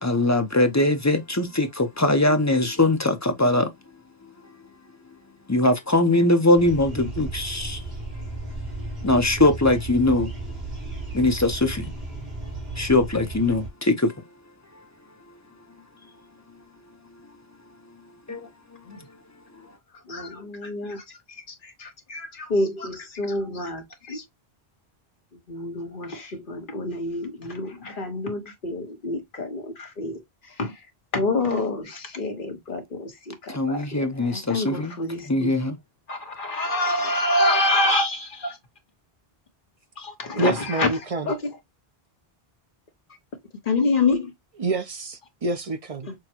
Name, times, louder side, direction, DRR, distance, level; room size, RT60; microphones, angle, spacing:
voice 1, 0.0-3.7 5.5-7.8 9.0-10.3 11.1-11.9 12.8-14.1 18.3-18.5 33.5-34.9 35.3-35.8, left 2 dB, 20° left, 0.5 m, -21 dB
sound 1, 6.6-13.7, right 2 dB, 70° right, 2.0 m, -34 dB
voice 2, 20.1-21.0 21.8-24.2 25.5-30.2 30.6-30.7 31.1-35.5 36.1-38.6 40.0-40.9 41.2-41.5 43.7-44.3 46.1-46.2, left 2 dB, 55° left, 1.3 m, -27 dB
voice 3, 40.4-41.3 44.6-46.1, right 3 dB, 40° right, 0.6 m, -27 dB
6.1 x 2.2 x 2.9 m
omnidirectional pair, 1.0 m